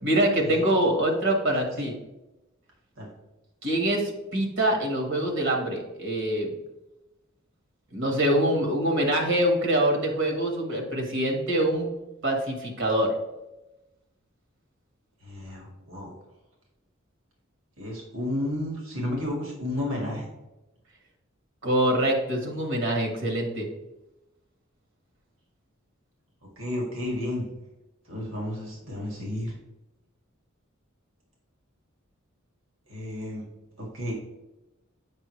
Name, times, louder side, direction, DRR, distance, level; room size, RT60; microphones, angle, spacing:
voice 1, 0.0-1.9 3.6-6.5 7.9-11.9 12.2-13.1 21.6-23.7, right 1 dB, 65° right, 2 dB, 1.5 m, -24 dB
voice 2, 15.2-16.1 17.8-20.3 26.6-27.5 28.1-29.5 32.9-33.4 33.8-34.1, left 1 dB, 80° right, -1 dB, 2.0 m, -32 dB
7.5 x 5.5 x 3.2 m, 0.98 s
head